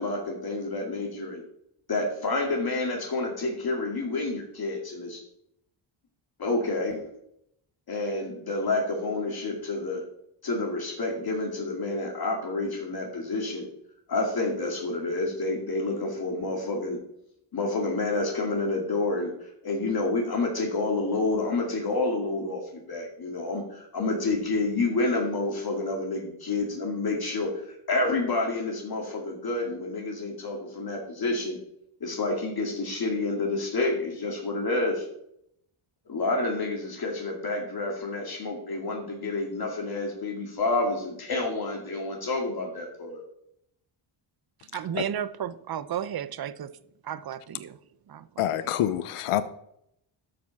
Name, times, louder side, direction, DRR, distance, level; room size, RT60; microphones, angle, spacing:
voice 1, 0.0-1.4 1.9-5.2 6.4-7.0 7.9-10.0 10.4-13.6 14.1-17.0 17.5-31.6 32.0-35.1 36.1-43.2, left 2 dB, 45° left, 2.4 m, -29 dB
voice 2, 44.7-46.7 47.0-47.8 48.1-48.4, right 9 dB, 45° right, 0.7 m, -33 dB
voice 3, 48.4-49.4, left 12 dB, 90° left, 0.8 m, -26 dB
12.5 x 5.2 x 5.9 m
cardioid pair, 105°, 50 cm